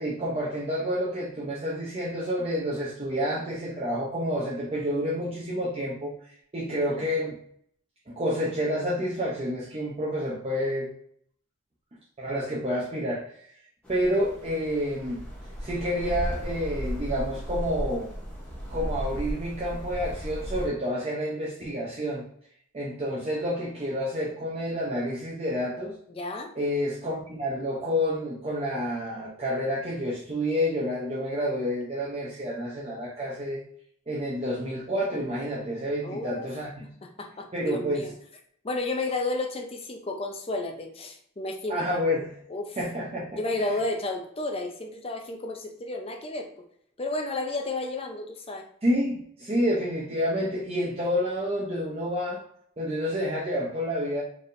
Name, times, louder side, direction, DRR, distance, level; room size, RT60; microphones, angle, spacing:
voice 1, 0.0-7.4 8.1-10.9 12.2-13.6 13.9-15.2 15.6-18.1 18.7-22.2 22.7-25.9 26.5-33.6 34.1-36.9 37.5-38.1 41.7-42.3 42.8-43.8 48.8-52.4 52.8-54.2, equal, 30° right, -5 dB, 0.7 m, -29 dB
voice 2, 6.7-7.0 26.1-26.5 36.0-36.5 37.0-38.1 38.6-41.8 42.5-42.8 43.3-46.5 47.0-48.7, left 2 dB, 30° left, 3 dB, 0.6 m, -32 dB
sound 1, 13.8-20.7, equal, 5° left, 0.9 m, -35 dB
4.4 x 3.4 x 2.6 m, 0.65 s
head